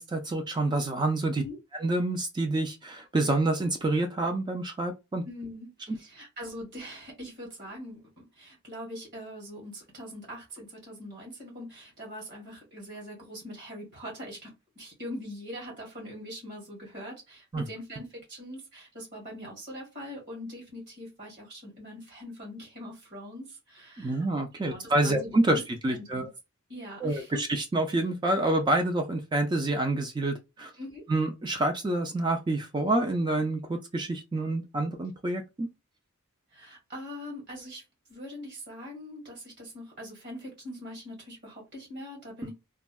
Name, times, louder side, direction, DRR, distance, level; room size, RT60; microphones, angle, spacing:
voice 1, 0.0-1.4 1.8-5.2 5.9-6.0 17.5-17.6 24.0-26.3 27.0-30.7 31.1-35.7, right 2 dB, 20° right, 0.3 m, -27 dB
voice 2, 5.2-14.5 14.7-24.2 24.5-25.6 25.9-26.3 26.7-27.3 30.8-31.0 36.5-37.8 38.1-42.5, equal, 50° right, 1.6 m, -42 dB
3.5 x 2.0 x 2.2 m
head